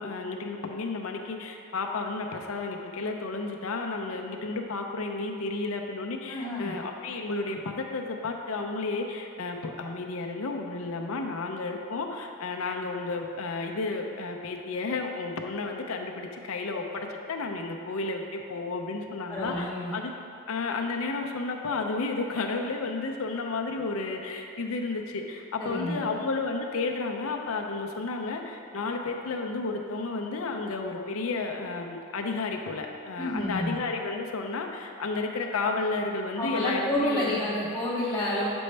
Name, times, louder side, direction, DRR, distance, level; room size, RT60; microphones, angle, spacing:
voice 1, 0.0-20.1 20.5-37.4, left 3 dB, 70° left, 3 dB, 0.6 m, -32 dB
voice 2, 6.3-6.7 19.3-19.9 25.6-26.1 33.2-33.8 36.4-38.5, left 1 dB, 10° left, -10 dB, 0.7 m, -29 dB
7.7 x 5.3 x 3.3 m, 2.6 s
head